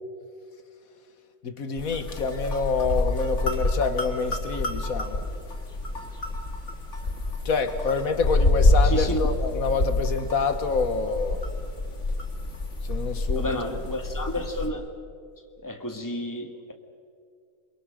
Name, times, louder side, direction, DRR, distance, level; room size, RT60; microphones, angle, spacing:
voice 1, 1.4-5.3 7.5-11.4 12.8-13.6, left 4 dB, 80° left, 9 dB, 1.8 m, -27 dB
sound 1, 1.8-14.7, left 2 dB, 55° left, 2.5 m, -27 dB
voice 2, 8.8-9.2 13.4-14.9 15.6-16.7, left 1 dB, 15° left, 4 dB, 1.8 m, -31 dB
29.0 x 23.0 x 6.5 m, 2.3 s
omnidirectional pair, 1.5 m